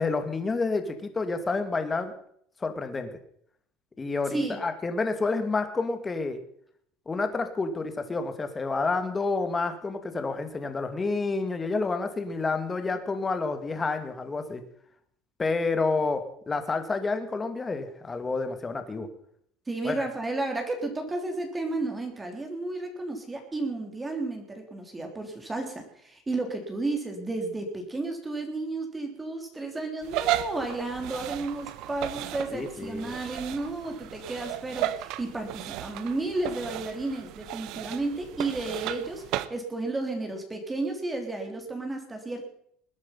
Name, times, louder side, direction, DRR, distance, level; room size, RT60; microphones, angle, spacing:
voice 1, 0.0-2.1 2.6-3.1 4.0-6.4 7.1-14.6 15.4-19.1 19.8-20.1 32.5-33.1, left 3 dB, 20° left, 7 dB, 2.3 m, -29 dB
voice 2, 19.7-42.5, right 2 dB, 15° right, 4 dB, 3.2 m, -32 dB
sound 1, 30.0-39.5, right 14 dB, 65° right, 0.9 m, -35 dB
20.5 x 9.7 x 5.8 m, 0.65 s
supercardioid pair, 115°, 0 cm